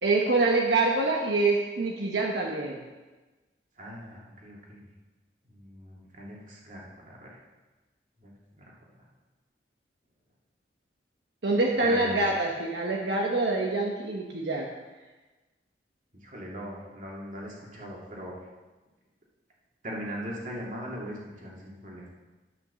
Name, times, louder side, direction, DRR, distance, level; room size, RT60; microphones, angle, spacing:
voice 1, 0.0-2.8 11.4-14.7, right 2 dB, 80° right, -1 dB, 1.2 m, -25 dB
voice 2, 3.8-4.9 5.5-7.4 8.2-8.3 8.6-8.7 11.8-12.2 16.1-18.4 19.8-22.2, equal, 45° right, -3 dB, 2.5 m, -40 dB
11.0 x 6.2 x 6.8 m, 1.2 s
head